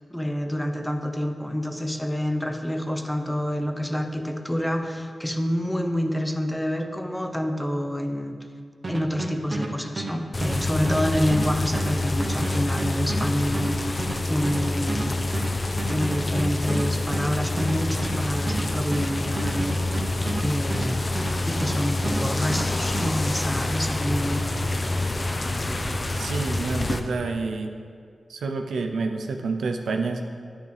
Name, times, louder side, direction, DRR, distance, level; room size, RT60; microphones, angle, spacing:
voice 1, 0.1-8.5 8.9-15.2 15.9-21.1 21.4-24.5, equal, 5° left, 6 dB, 0.8 m, -28 dB
sound 1, 8.8-21.8 22.0-23.1, right 2 dB, 45° right, 1.1 m, -32 dB
sound 2, 10.3-27.0, left 2 dB, 40° left, 0.7 m, -27 dB
voice 2, 26.2-27.7 28.3-30.3, right 3 dB, 90° right, 5 dB, 0.6 m, -28 dB
9.4 x 8.7 x 3.4 m, 2.1 s
cardioid pair, 55°, 0 cm